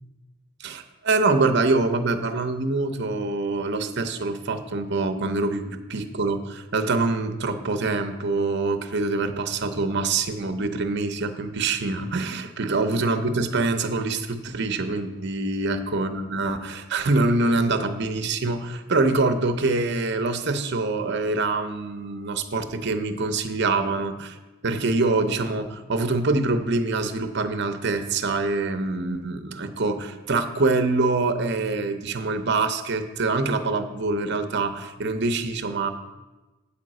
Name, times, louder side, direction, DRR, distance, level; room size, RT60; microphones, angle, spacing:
voice 1, 0.6-24.4 24.6-35.9, right 3 dB, 55° right, 7 dB, 0.8 m, -25 dB
8.7 x 5.2 x 7.6 m, 1.1 s
head